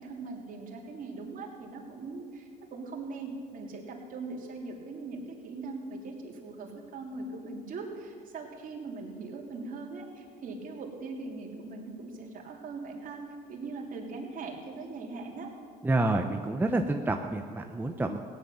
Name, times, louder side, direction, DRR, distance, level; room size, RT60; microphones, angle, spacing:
voice 1, 0.0-15.5, right 3 dB, 55° right, 0 dB, 3.1 m, -40 dB
voice 2, 15.8-18.2, right 2 dB, 10° right, 4 dB, 0.8 m, -28 dB
17.0 x 10.5 x 7.0 m, 2.3 s
cardioid pair, 110°, 17 cm